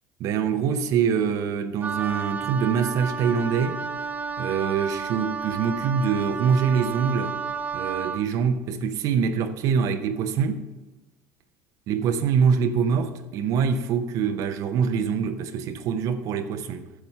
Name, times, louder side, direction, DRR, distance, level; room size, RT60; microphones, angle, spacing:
voice 1, 0.2-3.9 4.4-7.4 7.7-10.7 11.9-16.9, right 6 dB, 55° right, 0.7 m, -24 dB
Wind instrument woodwind instrument, 1.8-8.3, right 5 dB, 25° right, 0.8 m, -32 dB
9.3 x 7.0 x 5.6 m
hypercardioid pair, 70°, 7 cm